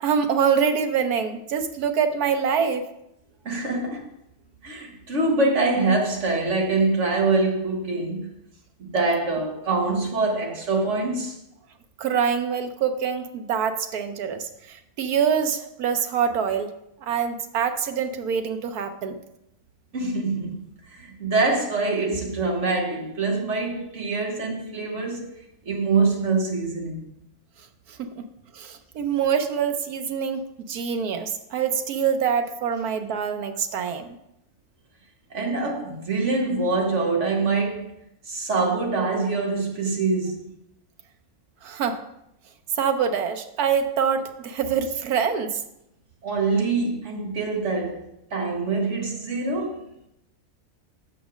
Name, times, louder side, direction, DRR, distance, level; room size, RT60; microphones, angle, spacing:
voice 1, 0.0-2.9 12.0-16.7 17.0-19.2 27.9-28.2 28.5-30.4 30.7-34.1 41.6-42.0 42.8-45.6, right 7 dB, 90° right, 1.3 m, -25 dB
voice 2, 3.5-4.1 4.6-8.3 8.8-11.4 19.9-20.6 20.9-25.3 25.7-27.1 35.3-37.9 38.3-40.4 46.2-49.9, right 3 dB, 55° right, 1.7 m, -24 dB
6.4 x 6.1 x 6.2 m
omnidirectional pair, 1.6 m